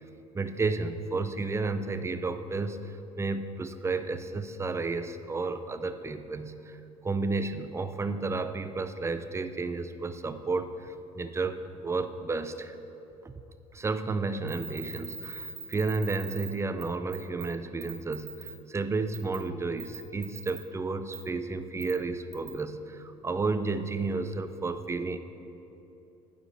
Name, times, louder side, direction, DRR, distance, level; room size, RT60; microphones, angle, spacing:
voice 1, 0.3-6.8 7.0-12.8 13.2-13.3 13.7-25.2, right 3 dB, 15° right, 10 dB, 0.5 m, -32 dB
sound 1, 14.5-16.5 16.8-16.9 17.1-17.5 17.8-18.5 19.1-19.4 19.8-20.6 21.1-21.2 21.8-21.9 22.3-22.5, right 7 dB, 55° right, 1.5 m, -41 dB
9.2 x 5.0 x 6.8 m, 2.9 s
hypercardioid pair, 65°, 19 cm